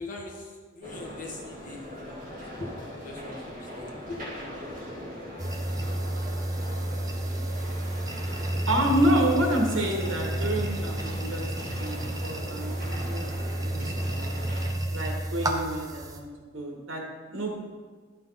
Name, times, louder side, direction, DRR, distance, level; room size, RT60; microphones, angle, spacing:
voice 1, 0.0-4.3 4.6-4.7, left 2 dB, 40° left, -1 dB, 1.4 m, -41 dB
sound 1, 0.8-14.7, equal, 40° right, 2.5 m, -40 dB
sound 2, 5.4-16.2, right 1 dB, 20° right, 0.7 m, -31 dB
voice 2, 8.7-13.2 13.6-14.2 14.9-16.3 16.5-17.5, right 1 dB, 80° right, 0 dB, 1.8 m, -28 dB
11.5 x 5.6 x 4.1 m, 1.5 s
head